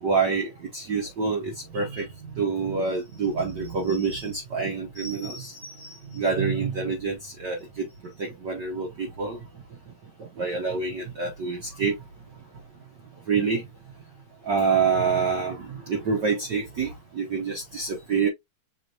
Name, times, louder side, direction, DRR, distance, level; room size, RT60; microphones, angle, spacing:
voice 1, 0.0-7.9 8.2-9.4 10.2-12.0 13.3-13.6 14.5-18.3, right 5 dB, 85° right, 0.9 m, -27 dB
6.7 x 2.5 x 2.9 m
omnidirectional pair, 3.3 m